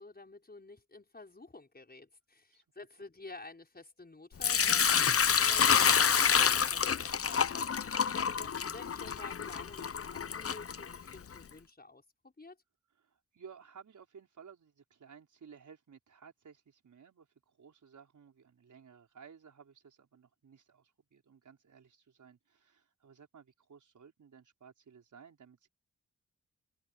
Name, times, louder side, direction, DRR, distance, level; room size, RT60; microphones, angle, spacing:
voice 1, 0.0-7.7 8.4-12.6, left 3 dB, 30° left, 6.0 m, -51 dB
Sink (filling or washing) / Liquid, 4.4-11.3, left 7 dB, 50° left, 0.8 m, -28 dB
voice 2, 8.2-8.6 13.0-25.7, right 6 dB, 75° right, 5.2 m, -56 dB
cardioid pair, 60°, 30 cm